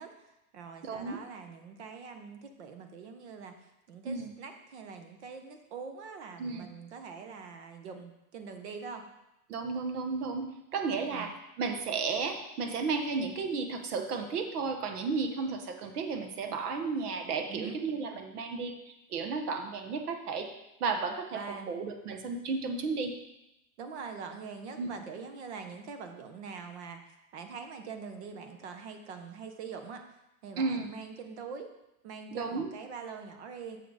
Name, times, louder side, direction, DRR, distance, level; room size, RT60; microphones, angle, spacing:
voice 1, 0.0-3.5 3.9-9.0 11.1-11.3 17.5-17.8 21.3-21.7 23.8-27.0 27.3-31.7 32.0-33.8, right 5 dB, 45° right, 6 dB, 1.0 m, -44 dB
voice 2, 0.8-1.2 4.0-4.3 6.4-6.7 9.5-18.8 19.1-20.5 20.8-21.4 21.7-23.1 24.8-24.9 30.6-30.9 32.3-32.7, right 4 dB, 75° right, 6 dB, 1.3 m, -33 dB
6.8 x 6.3 x 4.9 m, 0.89 s
supercardioid pair, 175°, 46 cm